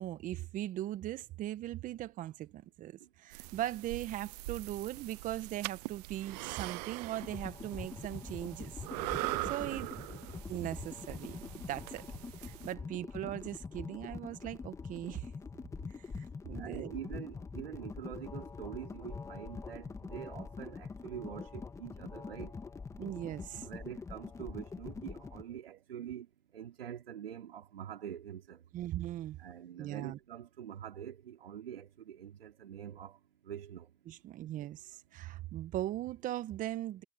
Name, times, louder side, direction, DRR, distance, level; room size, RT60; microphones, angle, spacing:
voice 1, 0.0-8.7 9.4-9.9 10.5-12.0 12.4-15.3 16.2-16.9 23.0-23.7 25.7-25.8 28.7-29.4 29.8-30.2 34.1-37.0, right 13 dB, 25° right, 1.8 m, -39 dB
sound 1, 3.3-12.7, right 21 dB, 45° right, 0.7 m, -42 dB
sound 2, 7.2-25.4, left 4 dB, 10° left, 1.9 m, -44 dB
voice 2, 9.6-9.9 16.6-22.5 23.5-28.6 29.4-33.9, right 9 dB, 75° right, 3.4 m, -45 dB
hypercardioid pair, 125°, 29 cm